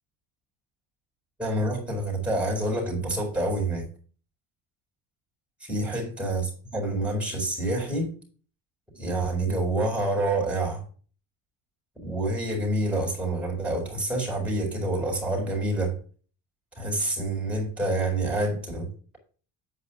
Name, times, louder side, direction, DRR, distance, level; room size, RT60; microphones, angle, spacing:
voice 1, 1.4-3.9 5.6-6.5 6.7-8.1 8.9-10.8 12.0-16.0 16.8-18.9, right 2 dB, 5° right, 4.3 m, -27 dB
8.7 x 5.0 x 5.8 m
cardioid pair, 145°, 37 cm